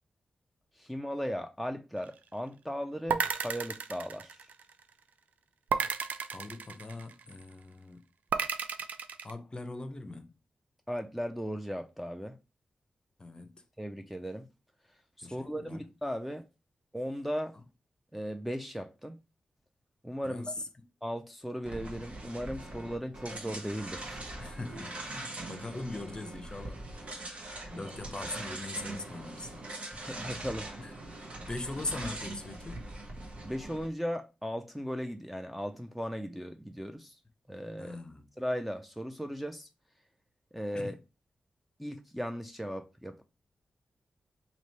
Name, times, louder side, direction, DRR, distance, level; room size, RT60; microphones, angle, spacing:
voice 1, 0.7-4.5 10.9-12.4 13.8-14.5 15.2-16.4 16.9-17.6 18.1-19.2 20.0-20.5 21.0-24.2 27.7-28.0 30.0-30.7 33.4-37.2 37.5-38.0 38.4-39.7 40.5-41.0 41.8-43.2, equal, 5° right, 0.5 m, -37 dB
sound 1, 3.1-4.8 5.7-7.3 8.3-9.3, right 6 dB, 75° right, 0.4 m, -33 dB
voice 2, 6.3-8.0 9.2-10.3 13.2-13.6 15.2-15.8 20.2-20.5 24.4-26.8 27.7-29.6 30.8-30.9 31.4-32.9 37.8-38.3 40.7-40.9, left 2 dB, 30° left, 0.7 m, -41 dB
sound 2, 21.6-33.9, right 2 dB, 50° right, 1.2 m, -42 dB
3.0 x 2.9 x 4.3 m
cardioid pair, 65°, 3 cm